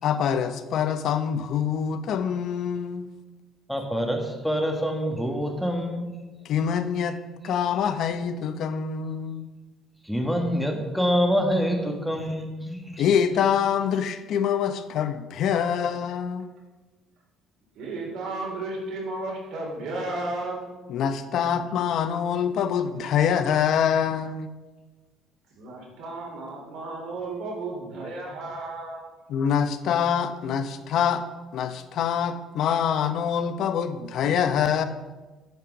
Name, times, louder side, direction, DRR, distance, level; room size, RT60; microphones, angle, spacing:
voice 1, 0.0-3.1 6.4-7.2 7.4-9.4 13.0-16.5 20.9-24.5 29.3-31.2 31.5-34.8, left 8 dB, 65° left, 10 dB, 0.7 m, -25 dB
voice 2, 3.7-6.1 10.0-13.0, equal, ahead, 2 dB, 1.5 m, -26 dB
voice 3, 17.8-20.6 25.6-29.0, right 2 dB, 75° right, -2 dB, 3.5 m, -33 dB
9.1 x 5.8 x 6.0 m, 1.2 s
cardioid pair, 105°, 0 cm